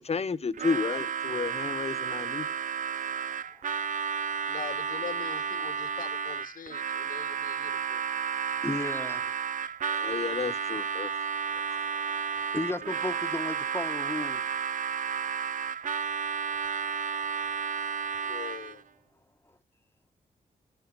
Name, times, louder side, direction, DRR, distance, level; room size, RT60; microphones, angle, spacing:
voice 1, 0.0-2.4 10.0-11.1, left 5 dB, 45° left, 1.1 m, -31 dB
Harmonica, 0.5-18.8, right 7 dB, 60° right, 0.6 m, -32 dB
voice 2, 3.0-3.9 4.3-4.4 5.6-5.7 8.6-9.7 11.5-14.4 16.5-16.6, left 2 dB, 15° left, 1.3 m, -37 dB
voice 3, 4.5-8.0 18.2-18.8, left 7 dB, 65° left, 1.1 m, -42 dB
12.0 x 9.5 x 4.0 m
cardioid pair, 55°, 15 cm